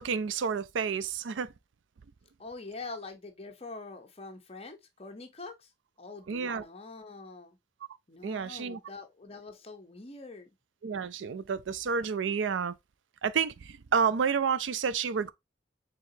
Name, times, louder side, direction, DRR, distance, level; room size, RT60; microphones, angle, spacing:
voice 1, 0.0-1.5 6.3-6.6 8.2-8.8 10.8-12.7 13.2-15.3, right 6 dB, 90° right, 0.4 m, -30 dB
voice 2, 2.4-5.7 6.0-7.6 8.1-10.5, left 3 dB, 35° left, 1.0 m, -44 dB
4.5 x 3.7 x 2.7 m
head